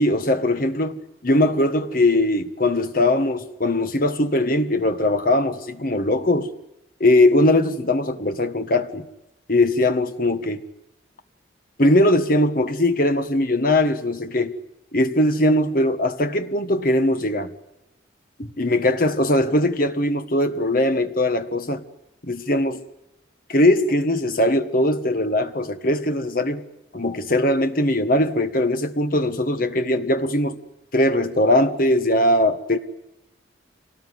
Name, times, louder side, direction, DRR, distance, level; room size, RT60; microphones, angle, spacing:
voice 1, 0.0-6.5 7.0-9.0 9.5-10.6 11.8-14.5 14.9-17.5 18.4-21.8 22.2-22.8 23.5-26.6 26.9-30.6 30.9-32.8, left 1 dB, 50° left, 1.6 m, -20 dB
26.5 x 18.5 x 9.6 m
head